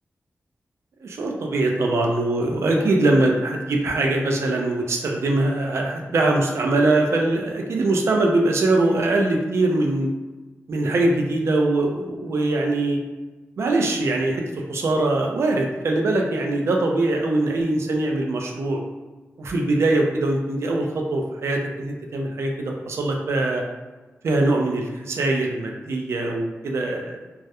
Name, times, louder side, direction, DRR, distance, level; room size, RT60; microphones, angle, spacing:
voice 1, 1.0-10.1 10.7-13.0 13.6-18.8 19.4-23.6 24.2-27.2, right 2 dB, 70° right, 1 dB, 0.4 m, -22 dB
2.2 x 2.0 x 2.8 m, 1.2 s
wide cardioid pair, 180°, 5 cm